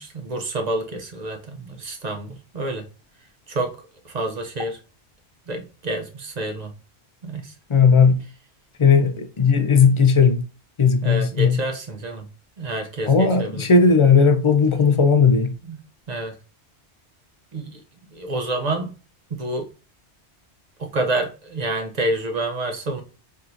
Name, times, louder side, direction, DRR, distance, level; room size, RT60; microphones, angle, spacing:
voice 1, 0.0-2.8 3.5-3.7 4.0-4.8 5.5-6.7 7.2-7.5 8.9-9.0 11.0-12.3 12.6-13.6 15.7-15.8 16.1-16.3 17.5-17.8 18.1-19.0 19.3-19.7 20.8-23.0, right 2 dB, 45° right, 0.7 m, -28 dB
voice 2, 7.7-8.2 8.8-10.4 10.8-11.6 13.1-15.5, left 5 dB, 45° left, 0.4 m, -16 dB
4.4 x 3.6 x 2.5 m
omnidirectional pair, 1.1 m